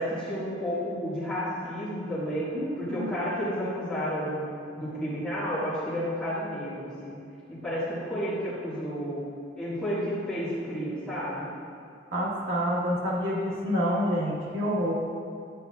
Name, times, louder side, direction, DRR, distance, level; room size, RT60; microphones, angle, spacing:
voice 1, 0.0-2.5 2.8-7.2 7.5-9.2 9.5-11.5, equal, 5° left, -14 dB, 1.7 m, -31 dB
voice 2, 2.5-3.1 12.1-14.9, equal, 85° right, -5 dB, 1.6 m, -28 dB
8.6 x 8.1 x 2.4 m, 2.4 s
head